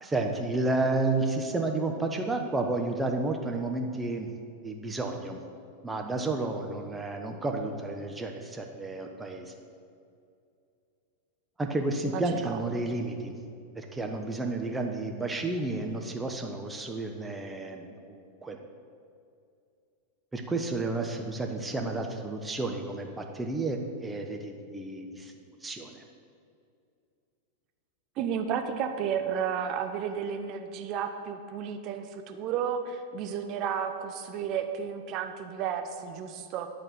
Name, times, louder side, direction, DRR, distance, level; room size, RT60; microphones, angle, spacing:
voice 1, 0.0-4.3 4.6-5.4 5.8-9.5 11.6-13.4 13.7-18.6 20.3-25.3 25.6-26.0, right 2 dB, 10° right, 2 dB, 0.9 m, -31 dB
voice 2, 12.1-12.8 28.2-36.7, right 7 dB, 40° right, 6 dB, 0.8 m, -32 dB
11.0 x 4.3 x 7.7 m, 2.4 s
figure-of-eight pair, 90°, 0 cm